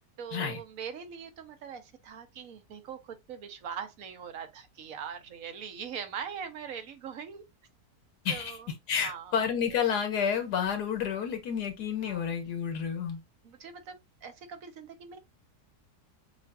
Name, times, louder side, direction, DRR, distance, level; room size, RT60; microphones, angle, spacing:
voice 1, 0.2-7.4 8.3-8.7 9.0-9.3 11.1-11.2 12.0-12.2 13.4-14.0 14.2-15.2, right 7 dB, 65° right, 1.2 m, -41 dB
voice 2, 8.2-8.6 8.9-13.2, left 7 dB, 90° left, 1.7 m, -30 dB
6.8 x 2.5 x 2.5 m
omnidirectional pair, 1.7 m